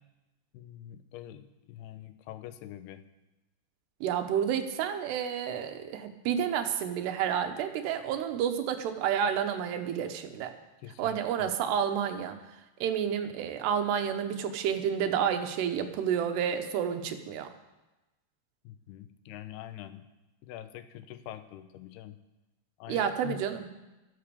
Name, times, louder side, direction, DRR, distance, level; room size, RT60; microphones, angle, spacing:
voice 1, 0.5-3.0 10.8-11.5 18.6-20.1 20.4-22.2 22.8-23.4, left 11 dB, 80° left, 11 dB, 2.7 m, -45 dB
voice 2, 4.0-10.5 11.0-12.4 12.8-17.5 22.9-23.7, right 8 dB, 85° right, 7 dB, 3.2 m, -30 dB
12.5 x 11.5 x 7.0 m, 1.0 s
omnidirectional pair, 4.7 m